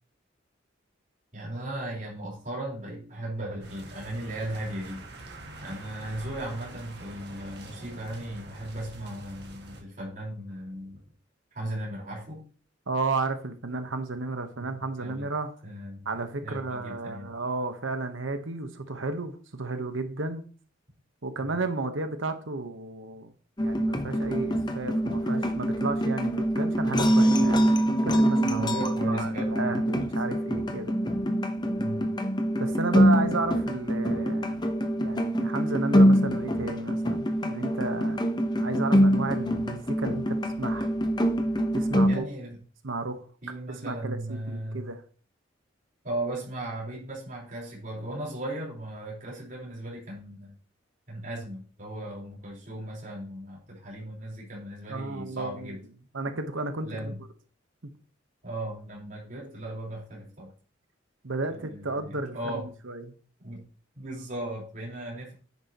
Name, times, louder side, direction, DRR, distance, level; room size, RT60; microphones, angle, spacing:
voice 1, 1.3-5.0 5.6-11.0 11.5-12.4 14.6-15.3 15.6-16.1 16.4-17.3 21.4-21.5 28.4-29.7 31.8-32.1 42.1-42.6 43.4-44.9 46.0-50.5 51.1-55.8 56.8-57.2 58.4-60.5 61.5-62.7 63.4-63.6 63.9-65.3, right 1 dB, 45° right, -4 dB, 4.4 m, -37 dB
sound 1, 3.6-9.8, right 2 dB, 60° right, 2.0 m, -45 dB
voice 2, 12.9-15.5 16.0-20.4 21.2-23.3 23.6-27.6 28.0-30.9 32.6-34.7 35.0-38.3 38.6-40.9 41.7-42.3 42.8-43.2 43.8-45.0 54.9-55.8 56.1-56.9 61.2-63.1, right 3 dB, 85° right, 8 dB, 1.2 m, -33 dB
sound 2, 23.6-42.2, equal, 20° left, 0.8 m, -25 dB
10.5 x 8.8 x 3.0 m, 0.40 s
head